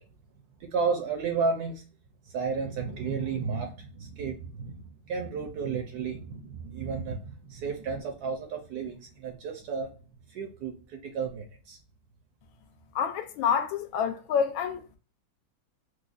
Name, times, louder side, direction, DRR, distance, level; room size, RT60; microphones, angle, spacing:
voice 1, 0.6-1.8 2.3-9.9 10.3-11.8, right 5 dB, 70° right, 1.0 m, -32 dB
voice 2, 12.9-14.8, left 7 dB, 85° left, 1.4 m, -27 dB
4.8 x 2.0 x 2.4 m
omnidirectional pair, 2.1 m